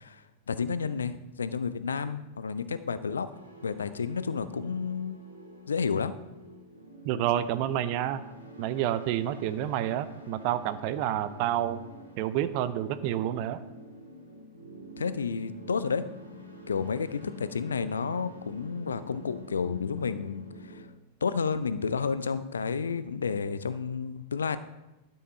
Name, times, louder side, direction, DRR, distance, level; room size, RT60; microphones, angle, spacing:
voice 1, 0.0-3.3 3.6-5.2 5.7-6.1 15.0-16.0 16.7-20.9 21.2-24.6, left 5 dB, 70° left, 14 dB, 0.5 m, -31 dB
sound 1, 3.3-20.8, equal, 90° right, 1.6 m, -48 dB
voice 2, 7.0-8.2 8.6-11.8 12.2-13.6, right 11 dB, 45° right, 13 dB, 0.6 m, -29 dB
12.0 x 5.7 x 4.1 m, 1.0 s
figure-of-eight pair, 90°, 0 cm